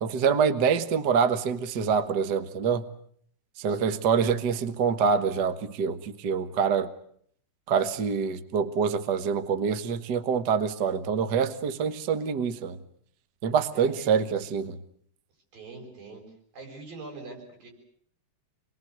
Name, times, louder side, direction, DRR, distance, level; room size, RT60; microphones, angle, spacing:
voice 1, 0.0-2.8 3.6-6.9 7.7-12.8 13.4-14.8, right 6 dB, 50° right, 1.2 m, -26 dB
voice 2, 3.7-4.0 13.7-14.0 15.5-16.2 16.5-17.7, right 3 dB, 85° right, 8.5 m, -43 dB
27.5 x 22.0 x 8.0 m
omnidirectional pair, 3.9 m